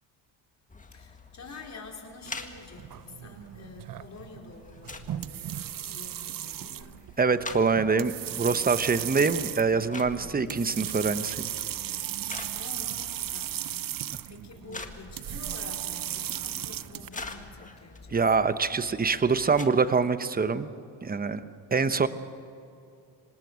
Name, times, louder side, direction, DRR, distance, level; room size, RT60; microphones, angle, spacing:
sound 1, 0.7-19.6, left 3 dB, 15° left, 1.8 m, -47 dB
voice 1, 0.9-7.0 12.5-13.6 14.3-18.2 21.8-22.1, left 4 dB, 35° left, 0 dB, 4.5 m, -47 dB
sound 2, 2.3-17.1, right 12 dB, 45° right, 0.7 m, -36 dB
voice 2, 7.2-11.5 18.1-20.7 21.0-21.4 21.7-22.1, right 4 dB, 20° right, 12 dB, 1.0 m, -25 dB
25.5 x 19.5 x 6.3 m, 2.7 s
cardioid pair, 100°, 48 cm